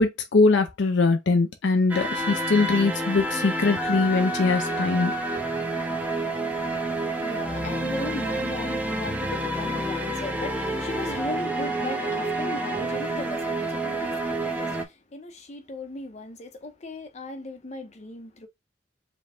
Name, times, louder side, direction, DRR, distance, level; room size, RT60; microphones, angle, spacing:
voice 1, 0.0-5.1, left 3 dB, 80° left, 0.6 m, -22 dB
sound 1, 1.9-14.8, right 1 dB, 10° right, 0.7 m, -29 dB
voice 2, 6.8-18.5, left 2 dB, 40° left, 0.8 m, -37 dB
5.0 x 2.3 x 3.4 m
head